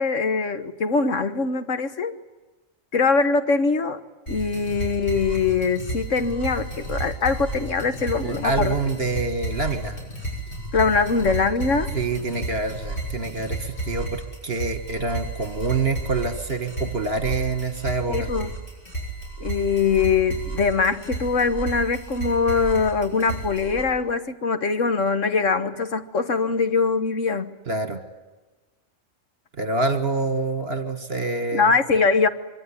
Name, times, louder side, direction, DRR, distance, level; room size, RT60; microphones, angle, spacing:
voice 1, 0.0-2.1 2.9-4.0 4.3-8.7 10.7-11.9 18.1-18.5 19.4-27.6 31.5-32.3, left 4 dB, 70° left, 10 dB, 1.8 m, -22 dB
sound 1, 4.3-23.8, right 2 dB, 40° left, 8.2 m, -32 dB
voice 2, 8.2-10.0 11.9-18.3 27.7-28.0 29.6-31.7, right 3 dB, 50° right, 8 dB, 1.9 m, -26 dB
25.0 x 24.0 x 9.9 m, 1.2 s
omnidirectional pair, 1.4 m